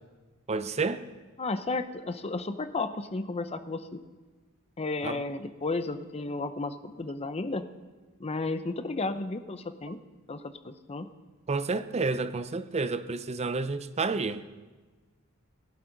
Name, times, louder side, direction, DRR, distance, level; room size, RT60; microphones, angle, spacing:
voice 1, 0.5-1.0 5.0-5.2 11.5-14.4, right 3 dB, 30° right, 12 dB, 0.5 m, -30 dB
voice 2, 1.4-4.0 4.8-7.7 8.2-10.0 10.3-11.1, left 3 dB, 30° left, 10 dB, 0.6 m, -33 dB
18.0 x 12.0 x 3.9 m, 1.3 s
head